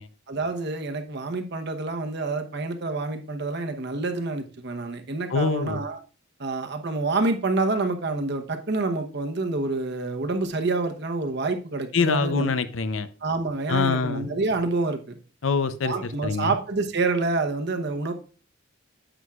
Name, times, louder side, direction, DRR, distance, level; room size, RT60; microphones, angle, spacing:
voice 1, 0.3-6.0 6.4-12.5 13.2-15.2 15.8-18.1, right 3 dB, 60° right, 6 dB, 1.0 m, -27 dB
voice 2, 5.3-5.8 11.9-13.1 13.7-14.3 15.4-16.6, left 4 dB, 75° left, 12 dB, 0.7 m, -25 dB
9.9 x 8.0 x 2.4 m, 0.38 s
head